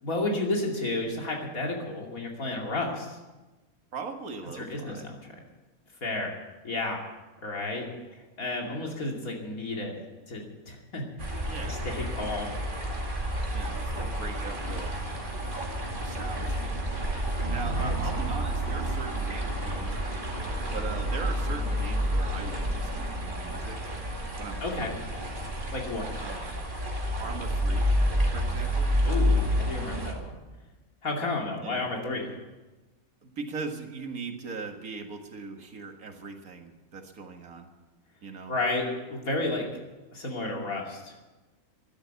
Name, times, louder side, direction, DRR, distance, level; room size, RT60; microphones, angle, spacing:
voice 1, 0.0-3.2 4.5-5.3 6.0-6.3 6.6-7.0 7.4-7.9 8.4-10.0 10.3-11.0 11.6-12.5 17.7-18.0 24.6-25.0 25.7-26.1 29.0-30.3 31.0-32.4 38.5-39.7 40.1-41.1, left 2 dB, 75° left, 0 dB, 3.1 m, -32 dB
voice 2, 3.9-5.1 11.5-11.9 13.5-14.9 16.0-16.8 17.5-20.2 20.7-23.8 24.4-25.0 26.2-26.6 27.2-27.9 28.3-28.9 31.6-31.9 33.2-37.7 38.2-38.5, right 4 dB, 75° right, 4 dB, 2.1 m, -40 dB
sound 1, 11.2-30.1, equal, 35° right, 2.4 m, -29 dB
13.5 x 11.0 x 8.3 m, 1.2 s
omnidirectional pair, 1.5 m